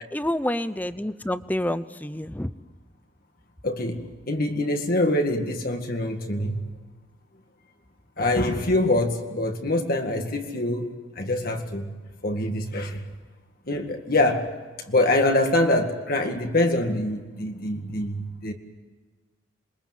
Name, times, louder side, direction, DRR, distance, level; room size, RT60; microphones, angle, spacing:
voice 1, 0.1-2.5, left 1 dB, 10° left, 13 dB, 0.7 m, -28 dB
voice 2, 3.6-6.6 8.2-12.0 12.2-13.1 13.7-14.5 14.9-18.5, left 1 dB, 50° left, 4 dB, 2.0 m, -24 dB
27.5 x 23.0 x 7.7 m, 1.4 s
head